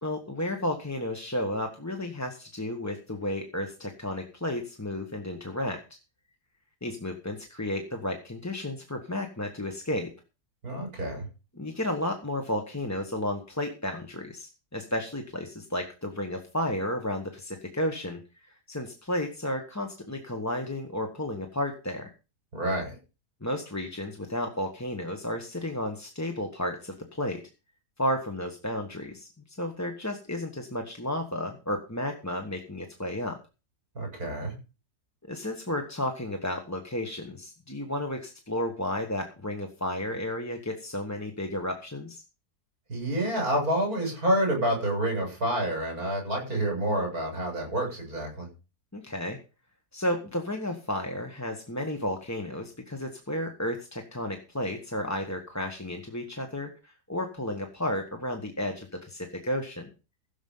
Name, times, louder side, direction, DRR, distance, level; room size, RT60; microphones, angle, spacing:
voice 1, 0.0-5.8 6.8-10.1 11.5-22.1 23.4-27.4 28.0-33.4 35.3-42.2 48.9-49.4 49.9-59.9, left 1 dB, 10° left, 4 dB, 1.1 m, -32 dB
voice 2, 10.6-11.3 22.5-23.0 33.9-34.5 42.9-48.5, right 1 dB, 65° right, 2 dB, 7.9 m, -28 dB
15.5 x 7.2 x 5.5 m, 0.32 s
omnidirectional pair, 1.7 m